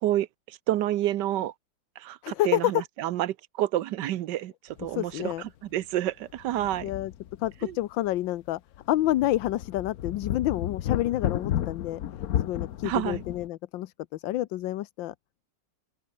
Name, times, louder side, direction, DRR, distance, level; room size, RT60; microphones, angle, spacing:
voice 1, 0.0-1.5 2.0-6.9 7.6-7.8 12.8-13.2, right 13 dB, 70° right, 1.3 m, -29 dB
voice 2, 2.2-2.7 4.8-5.4 6.8-7.1 7.4-8.6 8.9-12.0 12.4-15.1, left 14 dB, 85° left, 1.5 m, -28 dB
sound 1, 4.8-5.0 5.3-5.4 6.3-7.7 8.1-8.2 8.7-13.5, left 11 dB, 60° left, 1.2 m, -33 dB
open air
omnidirectional pair, 2.0 m